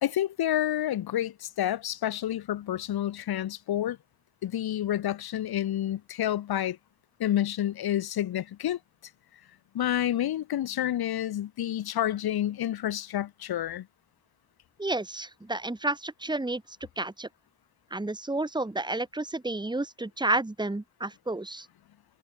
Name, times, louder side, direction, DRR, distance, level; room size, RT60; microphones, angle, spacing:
voice 1, 0.0-4.0 4.4-6.8 7.2-8.8 9.7-13.9, left 12 dB, 65° left, 1.7 m, -29 dB
voice 2, 14.8-16.6 17.0-17.3 17.9-21.7, right 2 dB, 10° right, 2.0 m, -31 dB
supercardioid pair, 55°, 41 cm